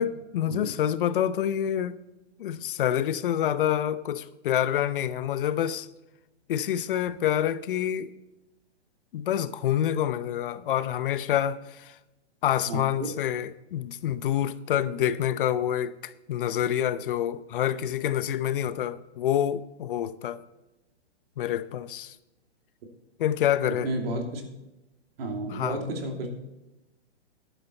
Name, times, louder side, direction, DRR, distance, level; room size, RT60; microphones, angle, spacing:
voice 1, 0.0-2.0 2.4-5.9 6.5-8.1 9.1-11.9 12.4-20.4 21.4-22.2 23.2-23.9 25.5-25.8, left 10 dB, 50° left, 0.7 m, -27 dB
voice 2, 12.6-13.1 23.8-24.4 25.2-26.3, right 1 dB, 60° right, 2.9 m, -32 dB
11.5 x 10.0 x 4.3 m
hypercardioid pair, 150°, 34 cm